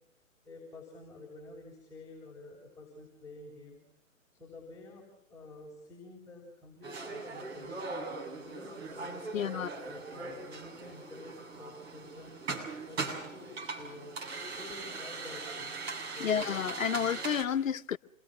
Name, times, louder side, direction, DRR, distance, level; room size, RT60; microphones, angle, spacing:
voice 1, 0.5-3.8 4.3-7.9 8.4-12.4 12.9-14.1 14.5-15.7 16.1-16.4 16.9-17.0, left 2 dB, 10° left, 7.2 m, -49 dB
sound 1, 6.8-17.5, right 3 dB, 50° right, 7.4 m, -40 dB
voice 2, 9.3-9.7 16.2-18.0, left 8 dB, 70° left, 1.0 m, -30 dB
28.0 x 23.0 x 6.4 m
hypercardioid pair, 135°, 41 cm